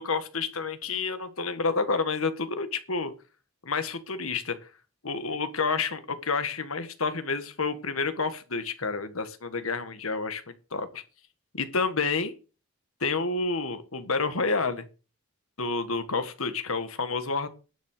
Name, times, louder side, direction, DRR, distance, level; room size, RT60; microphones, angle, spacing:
voice 1, 0.0-3.1 3.6-4.6 5.0-10.4 10.7-11.0 11.5-12.3 13.0-14.8 15.6-17.5, left 4 dB, 80° left, 10 dB, 1.7 m, -29 dB
11.5 x 7.4 x 6.7 m, 0.34 s
head